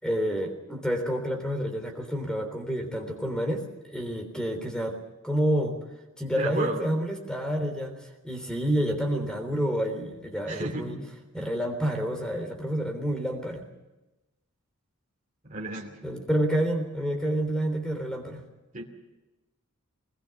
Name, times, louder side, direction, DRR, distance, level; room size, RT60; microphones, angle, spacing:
voice 1, 0.0-5.0 5.2-5.8 6.2-8.0 8.2-11.0 11.3-13.6 16.0-18.4, equal, 5° left, 6 dB, 3.5 m, -29 dB
voice 2, 6.4-6.8 10.5-11.1 15.4-16.0 18.7-18.9, right 2 dB, 35° right, 0 dB, 2.7 m, -32 dB
22.0 x 20.5 x 7.1 m, 1.0 s
head